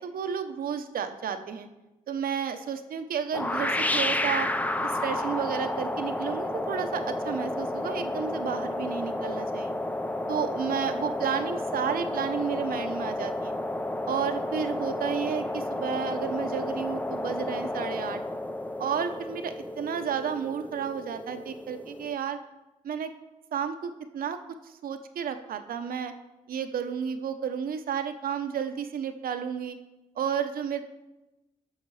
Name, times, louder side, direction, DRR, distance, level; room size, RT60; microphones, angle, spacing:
voice 1, 0.0-1.7 2.1-4.5 4.8-9.7 10.3-13.5 14.1-18.2 18.8-22.4 22.8-23.1 23.5-24.4 24.6-26.1 26.5-29.8 30.2-30.8, right 7 dB, 75° right, 8 dB, 0.8 m, -32 dB
sound 1, 3.3-22.1, left 1 dB, 10° left, 0.5 m, -31 dB
10.5 x 6.5 x 4.8 m, 1.0 s
cardioid pair, 85°, 15 cm